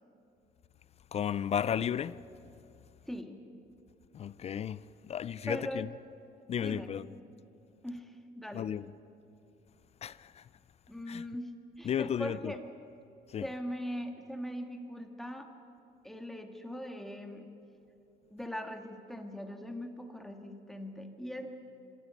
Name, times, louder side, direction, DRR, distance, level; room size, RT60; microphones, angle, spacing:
voice 1, 1.1-2.2 4.1-5.9 6.5-7.1 8.5-8.9 10.0-10.5 11.1-11.2 11.9-12.5 13.3-13.5, left 9 dB, 40° left, 0.4 m, -34 dB
voice 2, 3.1-3.5 5.5-5.9 6.6-7.0 7.8-8.7 10.9-12.7 13.4-15.5 16.0-17.5 18.3-21.5, equal, ahead, 2.0 m, -40 dB
25.0 x 13.0 x 9.3 m
cardioid pair, 110°, 17 cm